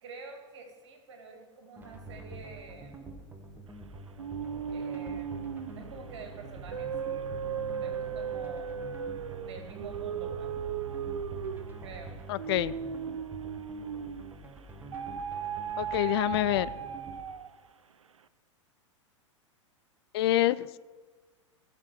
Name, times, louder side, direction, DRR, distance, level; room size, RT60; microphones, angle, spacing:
voice 1, 0.0-3.2 4.7-7.3 7.7-8.8 9.5-10.5 11.8-12.1, right 4 dB, 60° right, 4 dB, 2.1 m, -47 dB
sound 1, 1.8-17.2, right 2 dB, 10° right, 1.6 m, -47 dB
sound 2, 4.2-14.4 14.9-17.7, right 7 dB, 80° right, 0.5 m, -37 dB
voice 2, 12.3-12.7 15.8-16.7 20.1-20.8, left 14 dB, 50° left, 17 dB, 0.4 m, -27 dB
17.0 x 6.7 x 4.8 m, 1.4 s
figure-of-eight pair, 95°, 16 cm